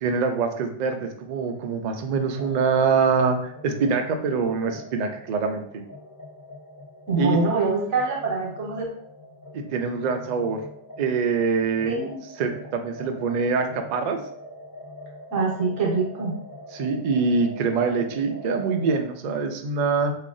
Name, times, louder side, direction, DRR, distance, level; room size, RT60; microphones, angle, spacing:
voice 1, 0.0-5.8 7.2-7.4 9.5-10.6 11.0-11.9 12.4-14.2 16.7-20.1, right 5 dB, 60° right, 5 dB, 0.4 m, -24 dB
sound 1, 2.4-19.0, equal, 20° left, 0.6 m, -42 dB
voice 2, 7.1-8.9 11.8-12.2 15.3-16.4, right 3 dB, 80° right, -2 dB, 1.2 m, -24 dB
3.2 x 2.4 x 3.8 m, 0.65 s
omnidirectional pair, 1.2 m